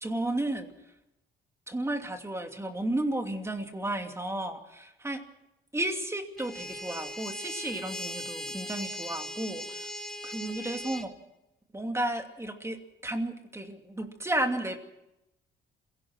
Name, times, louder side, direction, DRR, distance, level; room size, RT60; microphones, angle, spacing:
voice 1, 0.0-0.7 1.7-5.3 5.7-9.9 10.2-11.1 11.7-14.8, right 1 dB, 15° right, 5 dB, 2.7 m, -33 dB
sound 1, 6.4-11.1, left 1 dB, 5° left, 1.9 m, -39 dB
27.5 x 17.5 x 6.2 m, 0.90 s
cardioid pair, 90°, 20 cm